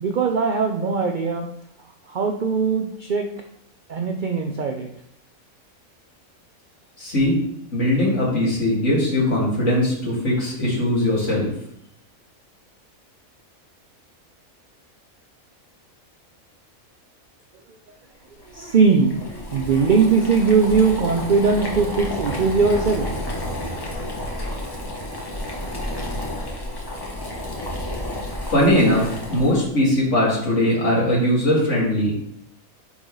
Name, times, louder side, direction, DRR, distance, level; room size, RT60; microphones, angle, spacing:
voice 1, 0.0-1.5 2.1-3.3 3.9-4.9 18.5-23.3, right 5 dB, 65° right, 3 dB, 0.4 m, -20 dB
voice 2, 7.0-7.4 7.7-11.5 28.4-32.1, left 1 dB, 55° left, -5 dB, 2.5 m, -20 dB
Boiling, 18.4-29.7, left 1 dB, 20° left, 0.9 m, -31 dB
9.0 x 3.8 x 3.2 m, 0.71 s
omnidirectional pair, 1.5 m